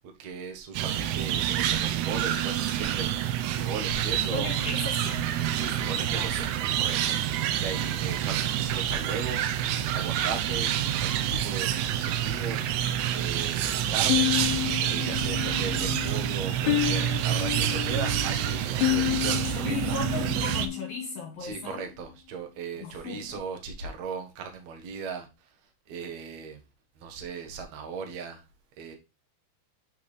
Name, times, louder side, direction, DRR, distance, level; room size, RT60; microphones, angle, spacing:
voice 1, 0.2-3.1 3.5-4.5 5.5-7.2 7.6-9.4 9.9-10.7 11.0-12.7 13.1-14.4 14.8-20.4 21.4-25.3 25.9-26.6 27.0-28.4 28.8-29.0, right 5 dB, 60° right, 1.9 m, -37 dB
sound 1, 0.7-20.7, right 11 dB, 80° right, 2.6 m, -28 dB
voice 2, 4.1-6.3 13.6-14.1 15.4-15.5 19.4-21.9 22.8-23.4, left 4 dB, 65° left, 3.1 m, -37 dB
sound 2, 14.1-21.2, left 15 dB, 85° left, 2.3 m, -30 dB
9.1 x 4.7 x 3.3 m
omnidirectional pair, 5.0 m